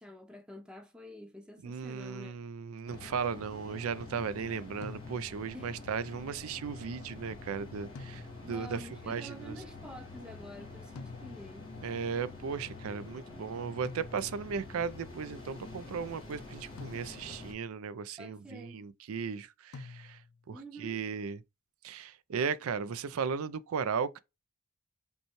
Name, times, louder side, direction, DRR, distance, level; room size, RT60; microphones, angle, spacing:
voice 1, 0.0-2.4 5.5-5.7 8.4-11.7 18.2-18.8 20.5-21.1, equal, 5° right, 0.6 m, -48 dB
voice 2, 1.6-9.5 11.8-20.2 20.5-21.4 21.8-24.2, right 6 dB, 75° right, 0.4 m, -36 dB
sound 1, 2.9-17.5, left 3 dB, 20° left, 1.3 m, -47 dB
sound 2, 4.8-5.6 7.9-8.7 11.0-11.7 13.8-14.6 16.8-17.5 19.7-20.5, left 4 dB, 85° left, 0.4 m, -48 dB
5.3 x 2.3 x 3.0 m
head